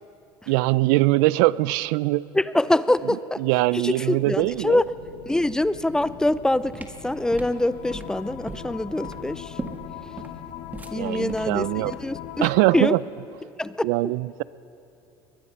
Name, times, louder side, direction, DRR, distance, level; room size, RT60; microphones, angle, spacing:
voice 1, 0.5-2.2 3.4-4.8 10.9-11.9 12.4-13.0 13.8-14.4, right 19 dB, 80° right, 20 dB, 0.4 m, -22 dB
voice 2, 2.3-3.4 3.7-4.8 5.3-9.5 10.9-12.5 12.7-12.9 13.6-14.1, left 1 dB, 5° left, 16 dB, 0.5 m, -24 dB
sound 1, 4.3-12.3, left 6 dB, 80° left, 4.0 m, -45 dB
sound 2, 6.7-12.8, right 2 dB, 15° right, 1.7 m, -39 dB
sound 3, 7.0-12.9, left 14 dB, 65° left, 0.7 m, -40 dB
23.0 x 20.5 x 5.7 m, 3.0 s
supercardioid pair, 115°, 10 cm